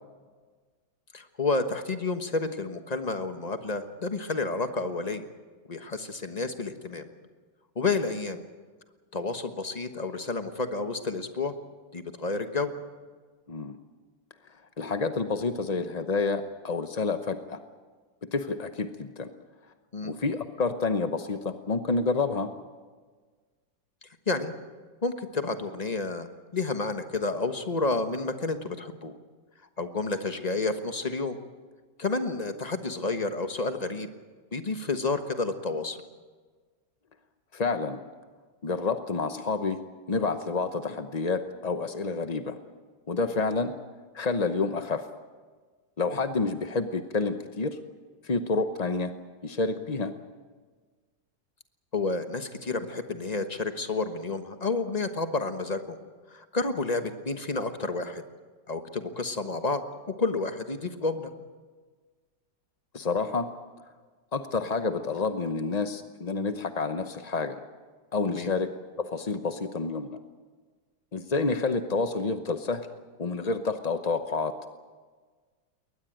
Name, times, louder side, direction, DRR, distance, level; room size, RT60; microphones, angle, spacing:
voice 1, 1.1-5.3 5.7-7.1 7.7-8.4 9.1-11.5 11.9-12.7 19.9-20.1 24.3-24.5 25.0-26.3 26.5-29.2 29.8-31.4 32.0-34.1 34.5-36.0 51.9-56.0 56.3-58.2 58.7-59.8 60.1-61.3 68.3-68.5, left 3 dB, 25° left, 8 dB, 1.1 m, -30 dB
voice 2, 14.8-17.6 18.2-19.3 20.0-22.5 37.5-38.0 38.6-39.8 40.1-42.6 43.1-43.7 44.1-45.1 46.0-47.8 48.2-49.1 49.4-50.2 62.9-63.5 64.3-67.6 68.1-68.7 69.0-70.2 71.1-72.9 73.2-74.5, left 4 dB, 45° left, 9 dB, 0.5 m, -29 dB
21.5 x 19.5 x 8.9 m, 1.4 s
omnidirectional pair, 2.1 m